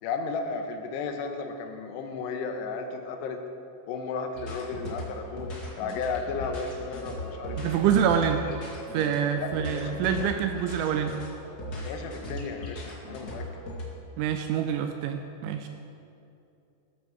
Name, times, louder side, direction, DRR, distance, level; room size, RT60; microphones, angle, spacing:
voice 1, 0.0-3.4 3.9-5.5 5.8-7.8 9.4-10.3 11.8-13.5, left 4 dB, 75° left, 4 dB, 2.7 m, -34 dB
sound 1, 4.3-13.8, left 1 dB, 55° left, 1.0 m, -38 dB
Wind instrument woodwind instrument, 6.7-11.2, left 3 dB, 55° right, 4.1 m, -46 dB
voice 2, 7.6-8.5 8.9-11.2 14.2-15.7, right 8 dB, 80° right, 6 dB, 2.8 m, -26 dB
13.5 x 13.5 x 4.6 m, 2.7 s
omnidirectional pair, 5.8 m